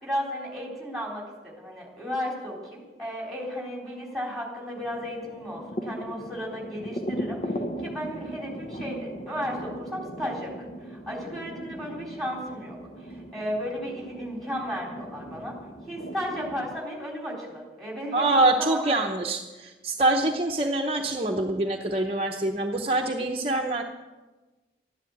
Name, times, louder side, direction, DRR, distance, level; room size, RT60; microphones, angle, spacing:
voice 1, 0.0-15.6 15.9-18.9, equal, ahead, -2 dB, 3.9 m, -34 dB
sound 1, 4.8-16.8, equal, 40° left, 0.8 m, -38 dB
voice 2, 18.1-23.8, right 2 dB, 35° right, 1 dB, 0.8 m, -25 dB
13.0 x 10.5 x 8.5 m, 1.2 s
head